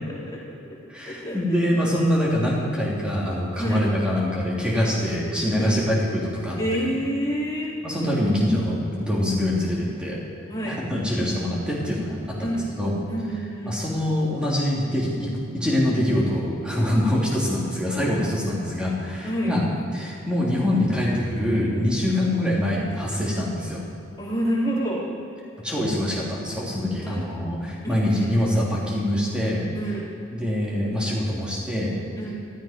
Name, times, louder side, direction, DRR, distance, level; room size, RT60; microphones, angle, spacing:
voice 1, 0.1-0.6 1.1-1.6 3.6-3.8 5.6-5.8 6.6-7.7 10.5-10.8 12.4-12.7 13.1-13.8 19.2-19.5 24.2-25.0 27.0-27.2 27.8-27.9 28.2-28.3 29.7-30.1 32.2-32.3, right 1 dB, 20° left, -6 dB, 3.6 m, -28 dB
voice 2, 0.9-6.9 7.8-10.2 10.6-12.9 13.6-19.6 19.9-23.8 25.6-29.7 30.3-31.9, left 1 dB, 5° right, -6 dB, 3.3 m, -24 dB
14.0 x 13.5 x 5.2 m, 2.8 s
head